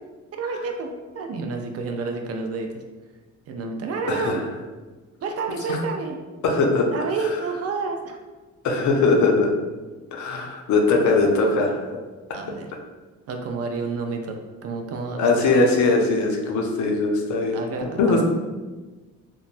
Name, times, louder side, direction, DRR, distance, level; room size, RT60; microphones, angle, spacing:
voice 1, 0.3-2.8 3.5-4.4 5.2-6.2 6.9-8.2 12.3-12.7 13.3-14.4 14.6-15.7 17.5-18.2, right 4 dB, 55° right, 3 dB, 0.4 m, -29 dB
voice 2, 4.1-4.4 5.7-5.8 6.4-6.9 8.6-9.5 10.1-11.8 12.3-12.4 15.2-18.2, left 3 dB, 70° left, 1 dB, 0.6 m, -20 dB
3.1 x 2.1 x 2.5 m, 1.3 s
cardioid pair, 90°, 30 cm